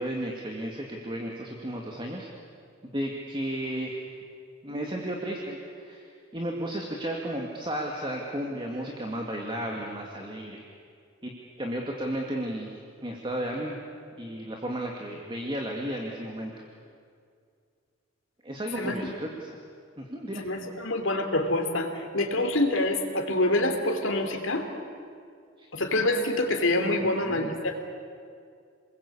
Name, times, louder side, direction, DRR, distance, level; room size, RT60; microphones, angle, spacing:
voice 1, 0.0-2.3 2.8-4.0 4.6-10.6 11.2-12.7 13.0-13.8 14.2-16.5 18.4-19.6 20.0-20.5 25.6-25.7 27.0-27.5, right 1 dB, 25° right, 0 dB, 2.1 m, -34 dB
voice 2, 18.7-19.1 20.3-24.7 25.7-27.8, left 1 dB, 70° left, 4 dB, 3.1 m, -26 dB
28.5 x 21.0 x 8.5 m, 2.2 s
head